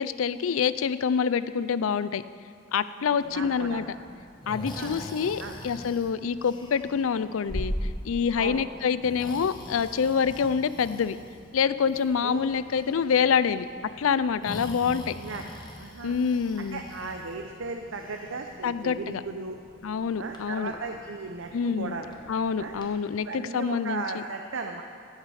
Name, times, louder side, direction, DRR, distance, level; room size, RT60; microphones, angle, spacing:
voice 1, 0.0-2.2 2.7-3.8 4.5-11.2 11.5-13.7 14.0-15.1 16.0-16.8 18.6-19.2 19.8-20.7 21.5-22.0 22.3-24.2, left 6 dB, 80° left, 15 dB, 0.4 m, -26 dB
voice 2, 2.8-3.9 4.6-5.0 5.4-5.6 8.4-8.6 12.2-12.4 15.2-15.4 15.8-16.2 16.6-19.6 20.2-22.2 22.6-22.7 23.2-24.8, right 4 dB, 70° right, 4 dB, 0.7 m, -36 dB
Breathing, 3.2-22.9, left 1 dB, 20° left, 1.0 m, -42 dB
16.0 x 8.1 x 4.9 m, 2.2 s
head